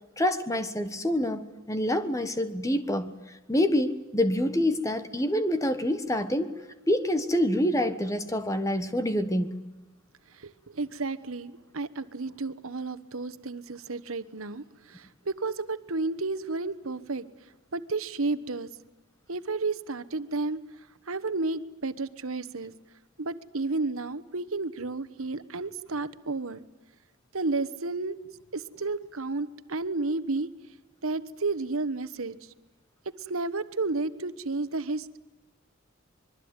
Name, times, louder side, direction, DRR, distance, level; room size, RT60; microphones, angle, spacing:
voice 1, 0.2-3.1 3.5-6.6 6.9-9.6, left 1 dB, 15° left, 1.3 m, -26 dB
voice 2, 10.4-17.2 17.7-18.7 19.3-20.6 21.1-22.7 23.2-26.6 27.3-28.2 28.5-30.5 31.0-32.4 33.3-35.2, right 3 dB, 80° right, 1.2 m, -32 dB
25.0 x 22.0 x 9.7 m
head